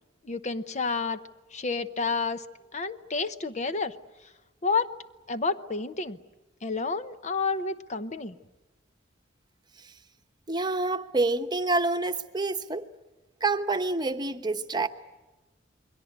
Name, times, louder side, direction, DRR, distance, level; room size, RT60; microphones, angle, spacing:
voice 1, 0.2-1.2 1.5-2.4 2.7-4.0 4.6-4.9 5.3-6.2 6.6-8.4, left 4 dB, 35° left, 0.8 m, -29 dB
voice 2, 10.5-12.9 13.4-14.9, right 3 dB, 20° right, 1.0 m, -27 dB
28.5 x 22.0 x 8.1 m
head